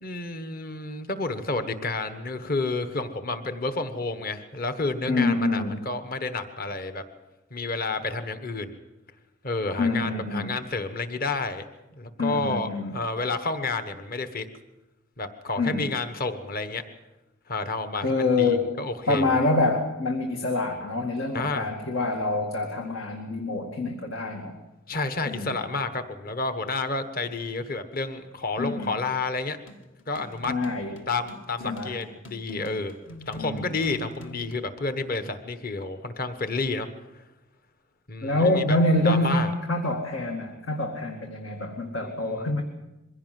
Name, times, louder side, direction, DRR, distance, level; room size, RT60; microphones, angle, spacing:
voice 1, 0.0-7.0 7.5-8.8 9.4-11.6 11.9-14.5 15.2-16.8 17.5-19.4 21.3-21.7 24.9-29.6 30.1-30.5 31.1-32.9 33.3-36.9 37.2-37.3 38.1-38.8 39.0-39.5 42.0-42.5, left 3 dB, 45° left, 9 dB, 1.3 m, -30 dB
voice 2, 5.1-5.8 9.8-10.5 12.2-12.9 15.6-15.9 18.0-18.7 19.1-24.6 25.3-25.6 28.6-28.9 30.5-31.0 31.6-32.0 33.4-33.7 38.2-42.6, left 2 dB, 85° left, 2 dB, 2.1 m, -26 dB
sound 1, 29.7-34.7, equal, 70° left, 2.0 m, -44 dB
22.5 x 16.5 x 7.6 m, 1.0 s
head